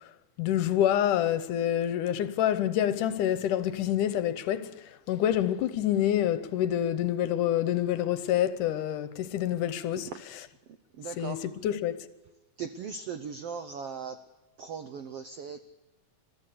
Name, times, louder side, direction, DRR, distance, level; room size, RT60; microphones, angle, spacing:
voice 1, 0.4-4.7 5.1-10.5 11.2-12.1, left 11 dB, 75° left, 2.3 m, -27 dB
voice 2, 11.0-11.4 12.6-14.1 14.6-15.6, right 6 dB, 85° right, 1.3 m, -38 dB
21.5 x 14.0 x 8.4 m
omnidirectional pair, 3.9 m